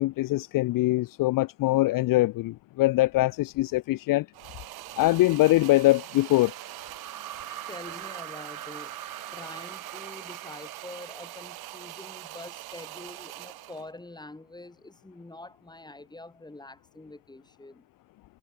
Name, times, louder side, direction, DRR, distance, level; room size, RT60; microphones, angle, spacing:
voice 1, 0.0-4.3 5.0-6.5, left 18 dB, 60° left, 0.5 m, -23 dB
sound 1, 4.3-13.9, right 18 dB, 85° right, 1.5 m, -43 dB
sound 2, 5.7-13.0, right 11 dB, 60° right, 3.2 m, -44 dB
voice 2, 7.7-9.0 9.3-17.8, left 2 dB, 10° left, 2.9 m, -45 dB
cardioid pair, 90°, 37 cm